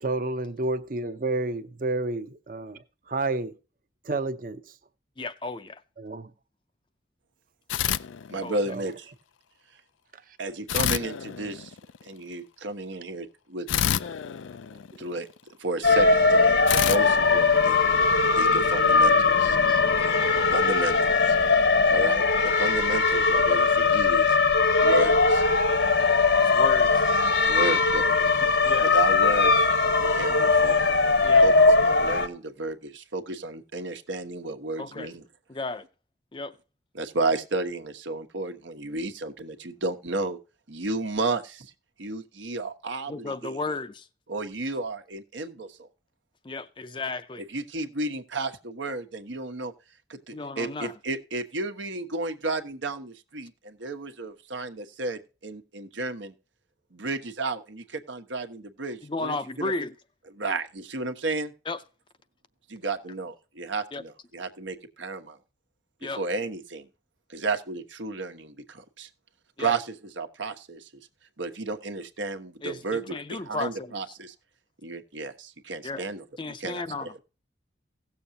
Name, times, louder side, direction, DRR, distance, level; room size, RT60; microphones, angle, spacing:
voice 1, 0.0-3.5 4.0-4.7 6.0-6.3 8.7-8.9 10.1-10.2 14.0-14.1 14.7-15.0, right 2 dB, 45° right, 0.7 m, -30 dB
voice 2, 5.2-5.8 8.4-8.6 19.7-19.8 26.4-26.9 28.6-28.9 31.2-31.5 34.8-35.1 35.5-35.9 36.3-36.5 43.1-44.1 46.4-47.4 50.3-50.9 59.0-59.9 61.7-61.8 63.9-64.0 66.0-66.2 69.6-69.8 72.6-73.9 75.8-76.1 76.4-77.1, left 3 dB, 25° left, 0.5 m, -34 dB
sound 1, 7.7-8.8 10.7-12.1 13.7-15.4 16.7-18.2, left 10 dB, 90° left, 0.4 m, -29 dB
voice 3, 8.3-9.1 10.4-11.7 12.0-13.7 15.0-15.3 15.6-17.9 18.4-19.6 20.5-20.9 21.9-24.4 24.8-25.4 27.5-28.1 28.4-28.5 28.8-29.7 30.0-30.8 31.4-31.5 31.8-35.2 36.9-40.4 40.7-41.7 42.0-43.6 44.3-45.9 47.5-49.7 50.1-56.3 56.9-59.7 60.3-61.5 62.7-65.4 66.2-66.9 67.3-69.1 69.6-70.8 71.4-74.3 74.8-76.2 76.6-77.2, right 3 dB, 80° right, 1.2 m, -32 dB
sound 2, 15.8-32.3, left 4 dB, 70° left, 1.1 m, -20 dB
17.0 x 7.0 x 2.7 m
head